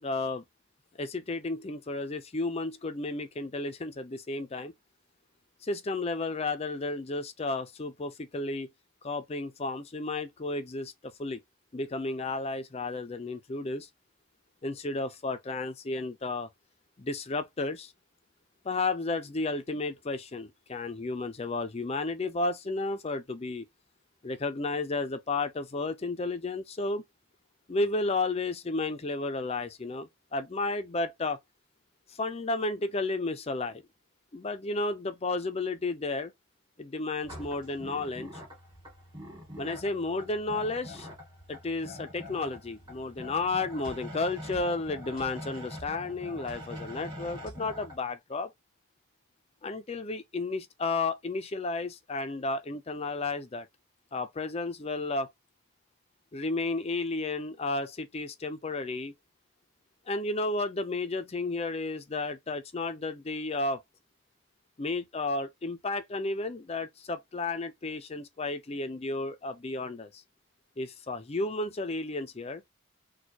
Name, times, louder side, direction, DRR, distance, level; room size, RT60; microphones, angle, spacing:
voice 1, 0.0-0.4 1.0-4.7 5.6-8.7 9.0-11.4 11.7-13.9 14.6-16.5 17.0-17.9 18.6-23.7 24.2-27.0 27.7-31.4 32.1-33.8 34.3-36.3 36.8-38.4 39.6-41.1 41.5-48.5 49.6-53.7 54.1-55.3 56.3-59.1 60.1-63.8 64.8-70.2 70.8-72.6, left 3 dB, 30° left, 0.5 m, -32 dB
sound 1, 37.2-48.0, equal, 20° right, 1.8 m, -44 dB
4.3 x 2.3 x 2.8 m
head